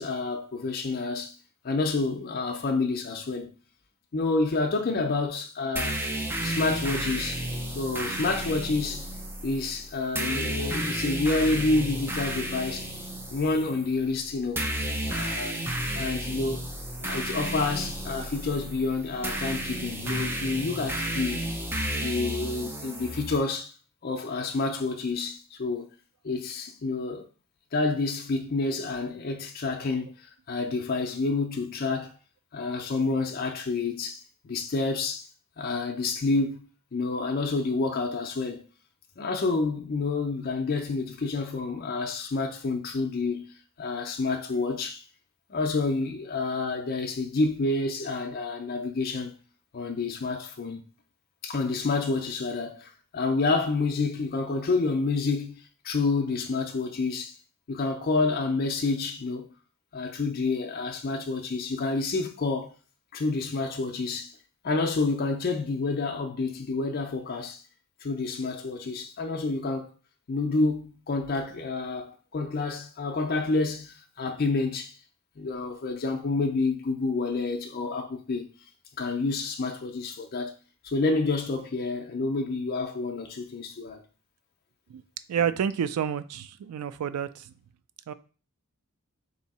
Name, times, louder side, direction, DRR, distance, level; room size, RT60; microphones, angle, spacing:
voice 1, 0.0-1.3 1.6-3.5 4.1-6.0 6.4-7.5 7.7-9.1 9.4-12.9 13.3-14.7 15.0-15.5 15.9-16.7 17.0-21.5 22.0-23.7 24.0-25.9 26.2-27.3 27.7-32.1 32.5-35.3 35.6-36.6 36.9-38.6 39.2-43.5 43.8-45.0 45.5-49.4 49.7-50.9 51.4-57.4 57.7-59.4 59.9-62.7 63.1-64.3 64.6-67.6 68.0-69.9 70.3-74.9 75.4-78.5 79.0-80.5 80.8-84.0, left 3 dB, 45° left, 0.5 m, -28 dB
sound 1, 5.8-23.4, right 1 dB, 10° right, 0.4 m, -32 dB
voice 2, 85.3-87.5 88.1-88.2, right 8 dB, 85° right, 0.3 m, -29 dB
3.5 x 2.7 x 4.1 m
head